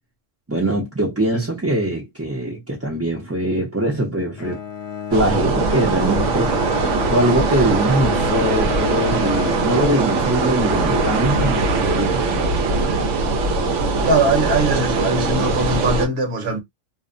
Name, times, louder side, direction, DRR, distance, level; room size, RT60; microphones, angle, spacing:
voice 1, 0.5-4.6 5.1-12.4, right 1 dB, 15° right, 0.5 m, -22 dB
Bowed string instrument, 4.4-12.6, left 7 dB, 45° left, 0.5 m, -31 dB
sound 1, 5.1-16.1, right 3 dB, 80° right, 1.0 m, -21 dB
voice 2, 14.0-16.6, right 2 dB, 60° right, 1.2 m, -21 dB
2.7 x 2.1 x 2.5 m
omnidirectional pair, 1.3 m